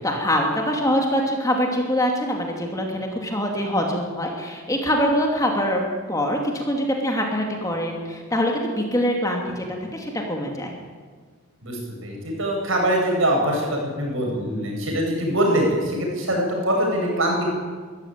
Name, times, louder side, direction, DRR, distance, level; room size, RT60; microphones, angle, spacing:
voice 1, 0.0-5.8 6.1-9.6 9.9-10.7, equal, 15° left, 1 dB, 2.7 m, -24 dB
voice 2, 11.6-17.5, right 1 dB, 65° right, 0 dB, 8.0 m, -23 dB
23.5 x 14.0 x 9.4 m, 1.5 s
head